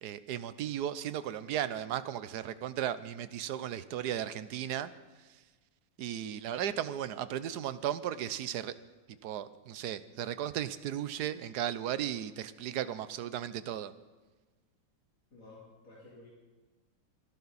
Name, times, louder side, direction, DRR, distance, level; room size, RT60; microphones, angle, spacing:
voice 1, 0.0-4.9 5.2-5.4 6.0-8.7 9.2-13.9, right 10 dB, 65° right, 14 dB, 1.2 m, -35 dB
voice 2, 15.3-16.3, left 2 dB, 45° left, -7 dB, 4.2 m, -53 dB
25.0 x 11.5 x 4.2 m, 1.3 s
omnidirectional pair, 2.0 m